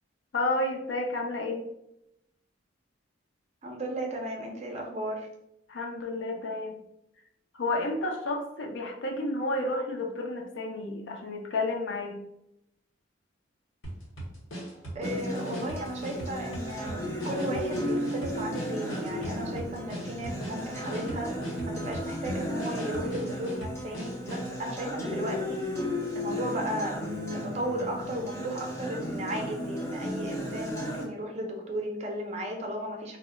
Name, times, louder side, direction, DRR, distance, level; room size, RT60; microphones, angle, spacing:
voice 1, 0.3-1.7 5.7-6.8 7.6-12.2, left 2 dB, 65° left, 2 dB, 0.5 m, -31 dB
voice 2, 3.6-5.3 14.9-21.3 21.7-25.7 26.1-33.2, right 1 dB, 35° right, 2 dB, 0.4 m, -35 dB
sound 1, 13.8-24.6, right 1 dB, 85° left, 0.9 m, -40 dB
Acoustic guitar, 15.0-31.0, equal, 15° left, 0.6 m, -34 dB
2.1 x 2.0 x 3.6 m, 0.81 s
head